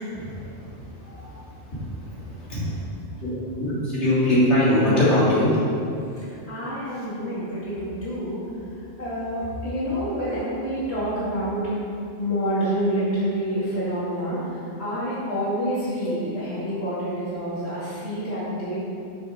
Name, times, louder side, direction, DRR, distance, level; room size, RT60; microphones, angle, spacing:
voice 1, 0.1-0.8 1.7-2.8 3.2-5.5 10.1-10.2 15.9-16.0, left 1 dB, 85° left, -10 dB, 3.1 m, -22 dB
voice 2, 1.0-1.4 6.3-8.4 9.0-11.8 12.2-18.8, equal, 70° left, -11 dB, 2.9 m, -28 dB
12.5 x 6.7 x 3.7 m, 2.6 s
omnidirectional pair, 1.1 m